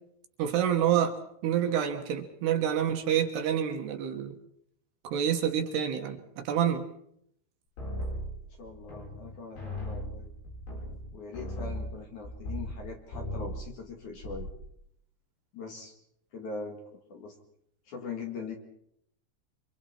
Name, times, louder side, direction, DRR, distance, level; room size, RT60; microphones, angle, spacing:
voice 1, 0.4-1.2 1.4-4.3 5.0-6.8, right 9 dB, 70° right, 6 dB, 3.1 m, -27 dB
sound 1, 7.8-9.3 9.6-12.8 13.1-13.7 14.0-14.6, equal, 80° left, 10.5 m, -37 dB
voice 2, 8.6-10.3 11.1-14.5 15.5-15.9 16.3-16.8 17.1-17.3 17.9-18.6, left 4 dB, 50° left, 3 dB, 2.9 m, -41 dB
26.5 x 25.5 x 4.4 m, 0.71 s
omnidirectional pair, 5.3 m